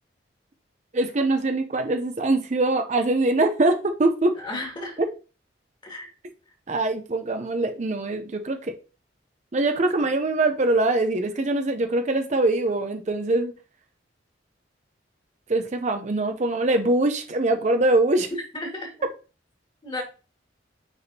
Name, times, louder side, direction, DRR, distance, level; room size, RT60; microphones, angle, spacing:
voice 1, 0.9-4.4 5.0-5.1 6.7-8.7 9.5-13.5 15.5-18.3, right 2 dB, 40° right, 6 dB, 0.6 m, -23 dB
voice 2, 4.4-5.0 5.8-6.1 18.5-18.9 19.8-20.0, left 2 dB, 25° left, 0 dB, 1.9 m, -33 dB
9.6 x 3.5 x 2.8 m, 0.34 s
head